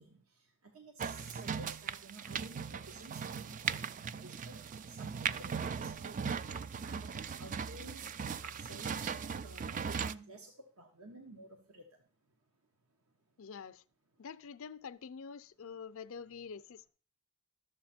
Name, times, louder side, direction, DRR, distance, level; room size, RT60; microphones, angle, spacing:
voice 1, 0.0-8.1 8.4-12.0, right 2 dB, 75° right, 1.2 m, -53 dB
sound 1, 1.0-10.1, right 6 dB, 35° right, 0.3 m, -39 dB
voice 2, 13.4-13.8 14.2-16.9, left 6 dB, 65° left, 0.5 m, -46 dB
12.5 x 7.3 x 4.3 m
head